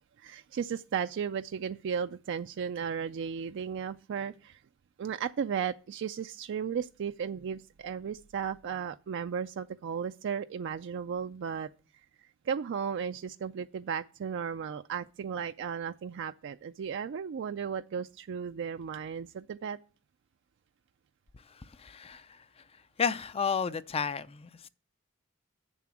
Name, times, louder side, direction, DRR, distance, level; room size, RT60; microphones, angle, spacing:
voice 1, 0.2-4.6 5.0-11.7 12.2-19.8, right 7 dB, 60° right, 0.3 m, -35 dB
voice 2, 21.8-22.2 23.0-24.7, left 6 dB, 30° left, 0.4 m, -31 dB
7.5 x 7.2 x 6.0 m
head